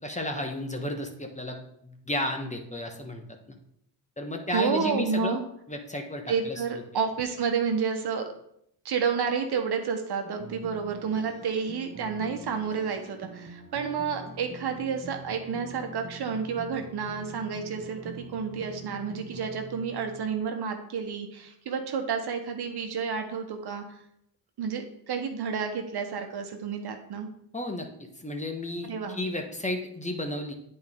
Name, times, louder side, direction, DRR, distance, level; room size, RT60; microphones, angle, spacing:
voice 1, 0.0-3.2 3.5-3.6 4.2-5.4 5.7-6.6 27.5-30.5, left 1 dB, 15° left, 3 dB, 1.3 m, -33 dB
voice 2, 4.5-5.4 6.3-8.3 8.8-23.8 24.6-27.3 28.8-29.2, right 6 dB, 65° right, 5 dB, 1.1 m, -30 dB
sound 1, 10.2-20.2, right 2 dB, 20° right, 1.2 m, -45 dB
8.7 x 4.4 x 3.7 m, 0.73 s
cardioid pair, 65°, 43 cm